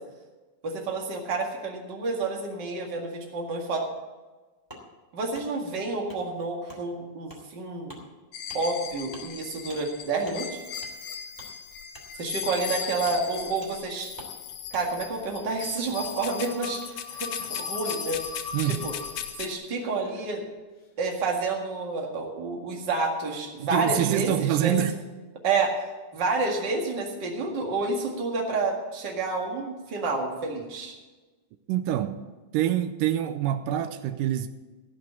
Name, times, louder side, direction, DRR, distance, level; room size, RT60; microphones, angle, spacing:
voice 1, 0.6-3.9 5.1-8.0 8.5-10.6 12.1-14.1 14.7-18.2 18.6-18.9 19.4-20.4 21.0-24.8 25.4-25.8 26.1-30.9, right 3 dB, 40° right, 2.1 m, -29 dB
Wood, 4.7-4.8 5.3-5.5 6.1-6.2 6.7-6.8 7.3-7.4 7.9-8.0 8.5-8.6 9.1-9.3 9.7-9.8 10.2-10.4 10.8-10.9 11.3-11.5 11.9-12.1 12.5-12.7 13.0-13.2 13.6-13.7 14.2-14.3 14.7-14.8, equal, 10° right, 2.3 m, -46 dB
sound 1, 8.3-19.5, left 8 dB, 75° left, 2.2 m, -37 dB
Laughter, 16.5-17.9 19.7-20.9, left 2 dB, 45° left, 1.0 m, -47 dB
voice 2, 18.5-18.9 23.6-25.0 31.7-32.2 32.5-34.5, right 12 dB, 85° right, 2.2 m, -25 dB
15.5 x 6.1 x 8.5 m
omnidirectional pair, 3.8 m